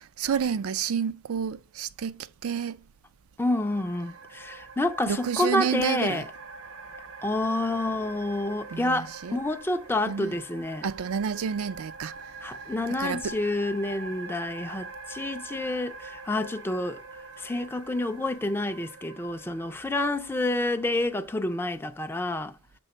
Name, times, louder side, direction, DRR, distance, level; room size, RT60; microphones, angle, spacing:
voice 1, 0.2-2.8 5.1-6.2 8.7-9.4 10.1-10.3 10.8-12.1 13.0-13.3, right 7 dB, 80° right, 0.4 m, -30 dB
voice 2, 3.4-6.3 7.2-10.9 12.4-17.0 17.4-22.5, left 2 dB, 10° left, 0.4 m, -28 dB
sound 1, 3.5-21.8, right 3 dB, 60° right, 0.7 m, -44 dB
6.9 x 3.5 x 4.2 m
head